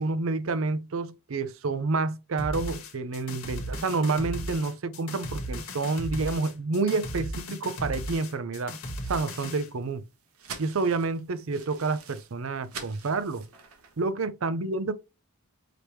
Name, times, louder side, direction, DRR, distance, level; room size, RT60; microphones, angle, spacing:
voice 1, 0.0-8.8 9.1-10.0 10.6-13.5 14.0-14.9, right 3 dB, 70° right, 0.5 m, -29 dB
sound 1, 2.4-9.7, equal, 80° left, 1.3 m, -36 dB
sound 2, 9.0-14.1, right 5 dB, 85° right, 1.1 m, -46 dB
5.1 x 2.9 x 3.1 m
head